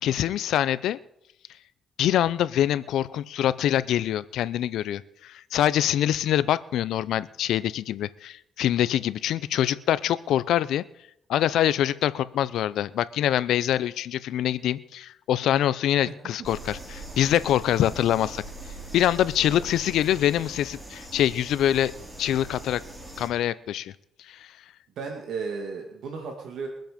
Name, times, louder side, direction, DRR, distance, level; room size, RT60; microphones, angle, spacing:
voice 1, 0.0-1.0 2.0-10.8 11.3-18.4 18.9-21.9 22.2-22.8 23.2-23.9 24.3-24.5, left 11 dB, 80° left, 17 dB, 0.6 m, -24 dB
sound 1, 16.4-23.3, right 2 dB, 15° right, 4.6 m, -41 dB
voice 2, 25.0-26.7, right 5 dB, 75° right, 2 dB, 2.2 m, -35 dB
23.0 x 7.8 x 5.2 m, 0.76 s
cardioid pair, 90°, 0 cm